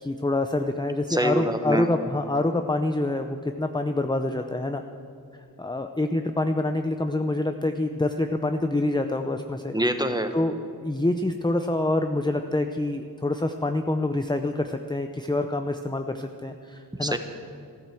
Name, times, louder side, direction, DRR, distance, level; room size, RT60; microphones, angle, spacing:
voice 1, 0.0-4.8 5.6-9.7 10.3-17.2, left 2 dB, 10° left, 6 dB, 0.6 m, -26 dB
voice 2, 1.1-1.9 9.7-10.3 17.0-17.2, right 1 dB, 10° right, 7 dB, 1.3 m, -25 dB
14.0 x 12.5 x 7.7 m, 2.4 s
wide cardioid pair, 50°, 38 cm